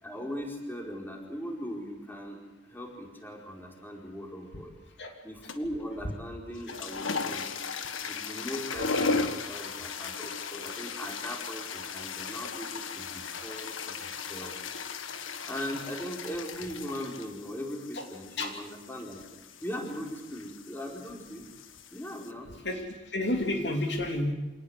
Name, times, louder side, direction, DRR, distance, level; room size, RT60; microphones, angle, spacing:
voice 1, 0.0-2.4 2.7-4.7 5.2-7.5 8.0-14.5 15.2-19.2 19.6-21.5 21.9-22.5, equal, 10° left, 1 dB, 4.6 m, -39 dB
sound 1, 5.5-5.8 6.5-22.3, left 4 dB, 85° left, 1.7 m, -37 dB
voice 2, 22.6-24.3, left 1 dB, 60° left, 3 dB, 2.9 m, -30 dB
26.5 x 19.5 x 8.0 m, 1.1 s
head